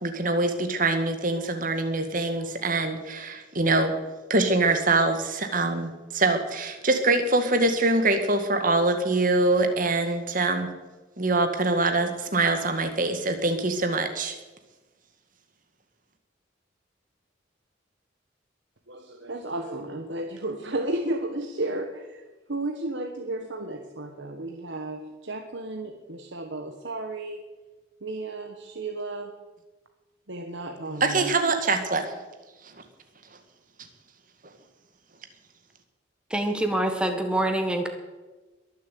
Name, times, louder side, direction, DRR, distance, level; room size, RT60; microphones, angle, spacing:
voice 1, 0.0-3.9 4.3-10.7 11.2-14.4 30.9-32.2, right 2 dB, 45° right, 7 dB, 2.0 m, -24 dB
voice 2, 18.9-27.4 28.0-29.3 30.3-31.2, right 2 dB, 70° right, 4 dB, 1.3 m, -33 dB
voice 3, 36.3-37.9, right 1 dB, 5° right, 5 dB, 1.6 m, -25 dB
22.0 x 7.5 x 8.4 m, 1.2 s
head